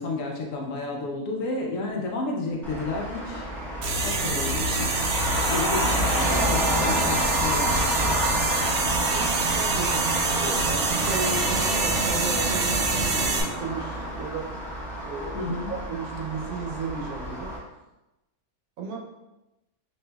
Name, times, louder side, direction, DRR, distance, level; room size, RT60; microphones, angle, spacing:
voice 1, 0.0-3.5 4.0-5.1 5.5-7.7 15.3-15.7, left 2 dB, 70° left, 0 dB, 1.0 m, -31 dB
Traffic noise roadway noise, 2.6-17.6, equal, 5° left, 0.4 m, -29 dB
sound 1, 3.8-13.4, right 3 dB, 65° right, 0.8 m, -26 dB
voice 2, 9.0-14.6 14.9-17.5 18.8-19.0, right 4 dB, 80° right, 0 dB, 1.1 m, -35 dB
5.4 x 2.6 x 2.2 m, 0.98 s
omnidirectional pair, 1.6 m